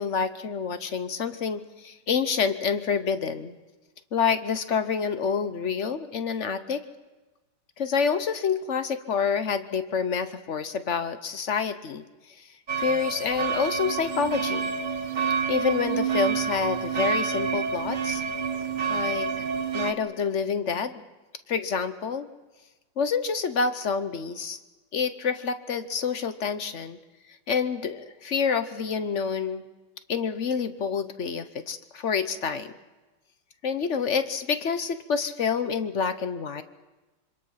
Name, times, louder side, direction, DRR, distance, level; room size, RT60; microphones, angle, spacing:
voice 1, 0.0-3.5 4.1-6.8 7.8-12.0 12.8-14.7 15.5-18.2 18.9-19.3 19.7-21.0 21.5-22.3 23.0-24.6 24.9-27.0 27.5-29.6 30.1-32.7 33.6-36.6, left 6 dB, 50° left, 11 dB, 0.8 m, -27 dB
sound 1, 12.7-19.9, right 6 dB, 50° right, 0.5 m, -28 dB
26.5 x 25.0 x 5.8 m, 1.1 s
omnidirectional pair, 2.4 m